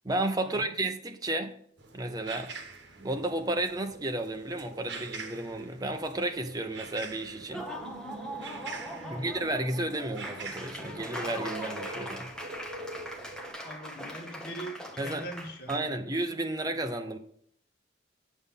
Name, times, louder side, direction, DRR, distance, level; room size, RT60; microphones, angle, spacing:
voice 1, 0.0-1.6 1.9-2.5 3.0-7.7 9.1-12.3 15.0-15.2 15.7-17.2, right 2 dB, 20° right, 0.9 m, -32 dB
sound 1, 1.8-13.5, right 3 dB, 75° right, 1.3 m, -45 dB
Laughter / Applause, 7.4-15.8, equal, 5° left, 1.2 m, -40 dB
voice 2, 13.6-16.1, right 1 dB, 55° left, 1.8 m, -42 dB
8.8 x 6.8 x 3.7 m
head